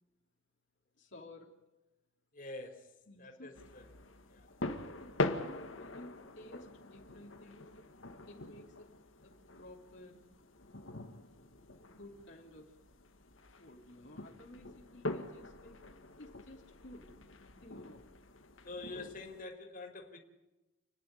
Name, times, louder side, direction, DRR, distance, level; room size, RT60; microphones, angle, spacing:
voice 1, 1.0-1.5 3.1-3.5 5.0-7.7 8.3-8.9 9.2-10.2 11.8-12.7 13.6-15.8 16.2-17.1 17.4-18.0, left 1 dB, 65° left, -1 dB, 3.2 m, -54 dB
voice 2, 2.3-3.9 4.3-4.5 18.6-20.2, left 2 dB, 45° left, 3 dB, 3.8 m, -47 dB
sound 1, 3.6-19.4, left 2 dB, 85° left, 2.1 m, -43 dB
29.5 x 11.0 x 9.6 m, 1.0 s
head